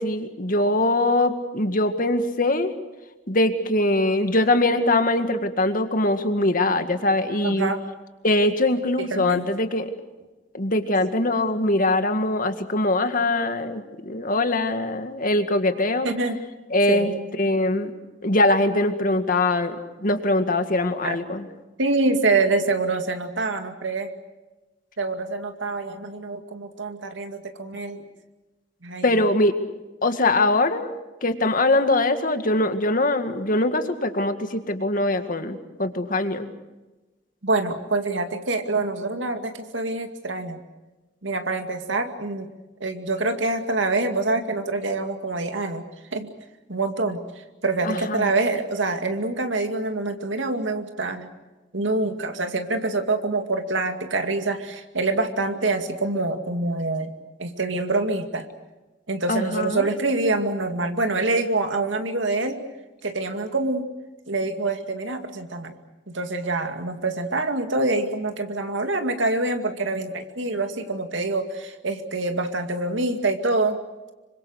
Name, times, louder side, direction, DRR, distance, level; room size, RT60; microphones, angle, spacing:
voice 1, 0.0-2.7 3.3-7.7 8.2-9.9 10.5-16.1 16.7-17.1 17.4-17.9 18.2-21.5 29.0-29.5 30.0-30.9 31.2-36.5 47.8-48.3 59.3-59.9, left 2 dB, 50° left, 7 dB, 2.0 m, -22 dB
voice 2, 7.4-7.8 9.0-9.5 16.0-16.4 16.9-17.6 21.0-21.2 21.8-24.1 25.0-28.0 28.8-29.2 37.4-40.6 41.2-42.5 42.8-45.8 46.1-46.3 46.7-47.2 47.6-51.3 51.7-57.1 57.4-58.5 59.1-62.6 63.0-63.9 64.3-65.8 66.1-73.8, right 2 dB, 90° right, 6 dB, 2.4 m, -26 dB
27.0 x 24.5 x 6.5 m, 1.1 s
head